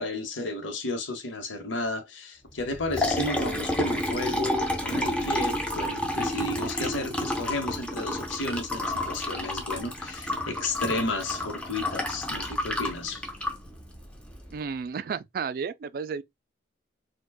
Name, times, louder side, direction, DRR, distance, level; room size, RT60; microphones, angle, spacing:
voice 1, 0.0-13.3, left 2 dB, 85° left, 0.9 m, -33 dB
Liquid, 2.6-14.5, left 1 dB, 5° left, 0.6 m, -30 dB
voice 2, 14.5-16.2, right 5 dB, 50° right, 0.3 m, -32 dB
4.6 x 2.3 x 2.3 m
head